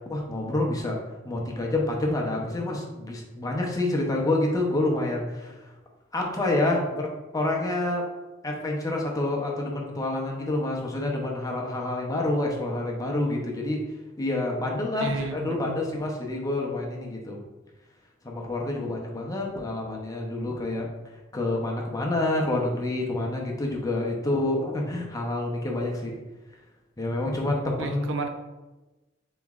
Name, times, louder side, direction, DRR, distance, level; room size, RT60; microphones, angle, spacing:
voice 1, 0.1-1.0 1.2-5.6 6.1-7.1 7.3-8.0 8.4-13.8 14.2-17.4 18.2-20.9 21.3-26.2 27.0-28.1, left 2 dB, 20° left, -1 dB, 0.7 m, -28 dB
voice 2, 15.0-15.8 27.8-28.3, right 3 dB, 75° right, 6 dB, 0.5 m, -32 dB
7.1 x 3.1 x 2.4 m, 1.1 s
head